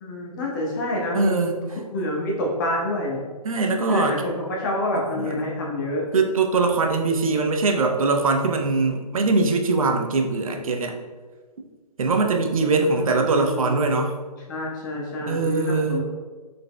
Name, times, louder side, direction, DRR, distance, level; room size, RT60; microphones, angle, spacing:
voice 1, 0.0-1.4 1.9-3.3 3.9-6.1 12.8-13.9 14.5-16.0, left 1 dB, 30° left, -2 dB, 0.8 m, -28 dB
voice 2, 1.1-1.5 3.4-4.2 5.2-5.3 6.1-11.0 12.0-14.2 15.3-16.0, right 3 dB, 60° right, 4 dB, 0.5 m, -22 dB
4.0 x 3.3 x 2.2 m, 1.4 s
figure-of-eight pair, 135°, 20 cm